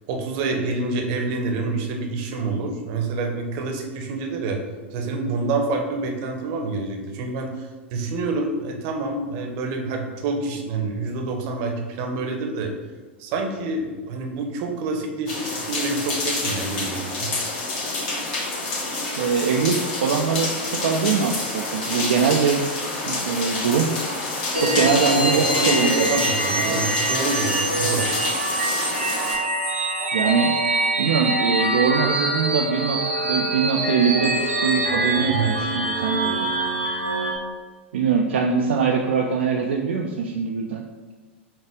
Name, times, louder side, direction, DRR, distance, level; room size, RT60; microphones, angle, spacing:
voice 1, 0.1-4.6 4.9-12.7 13.2-17.3 24.7-28.2 35.2-35.5, right 3 dB, 50° right, 2 dB, 0.8 m, -27 dB
sound 1, 15.3-29.3, left 2 dB, 50° left, 1.4 m, -28 dB
voice 2, 19.2-22.6 23.1-23.9 24.5-26.1 30.1-30.5 31.0-36.5 37.9-40.8, right 6 dB, 65° right, 1 dB, 0.4 m, -22 dB
sound 2, 24.5-37.3, right 2 dB, 90° right, 0.9 m, -24 dB
5.7 x 2.4 x 3.5 m, 1.4 s
figure-of-eight pair, 90°, 7 cm